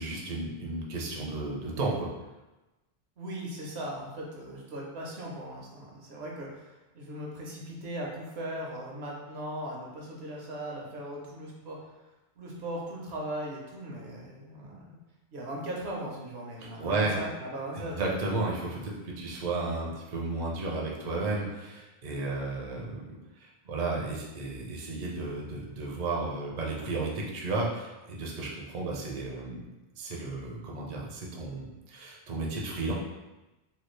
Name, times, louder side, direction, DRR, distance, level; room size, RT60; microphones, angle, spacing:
voice 1, 0.0-2.1 16.6-17.2 17.7-29.6 30.0-32.9, right 3 dB, 50° right, -2 dB, 0.6 m, -33 dB
voice 2, 3.2-11.8 12.4-15.0 15.3-18.0, right 1 dB, 75° right, -2 dB, 1.0 m, -38 dB
3.2 x 2.3 x 3.1 m, 1.0 s
omnidirectional pair, 1.1 m